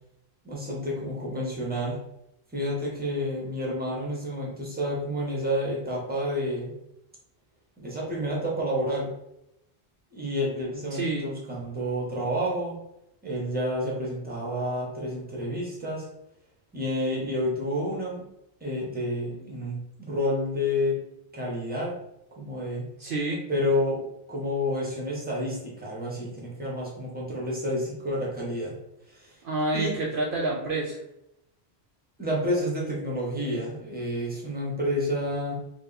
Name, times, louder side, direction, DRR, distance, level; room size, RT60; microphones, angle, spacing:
voice 1, 0.4-2.0 2.5-6.7 7.8-9.1 10.1-12.8 13.2-16.1 16.7-18.2 18.6-21.0 21.3-22.0 22.4-22.9 23.5-28.7 29.1-29.4 29.7-30.0 32.2-35.5, equal, 10° right, -4 dB, 1.0 m, -29 dB
voice 2, 10.9-11.3 23.0-23.4 29.4-31.0, right 2 dB, 60° right, -2 dB, 0.7 m, -28 dB
3.2 x 2.7 x 3.9 m, 0.84 s
omnidirectional pair, 1.1 m